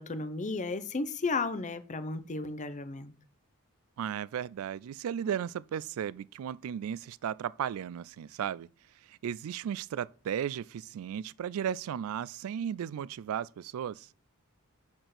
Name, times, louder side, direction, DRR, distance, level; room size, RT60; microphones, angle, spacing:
voice 1, 0.0-3.1, left 3 dB, 35° left, 0.7 m, -34 dB
voice 2, 4.0-8.7 9.1-14.1, right 9 dB, 70° right, 0.3 m, -35 dB
6.8 x 4.3 x 5.9 m
head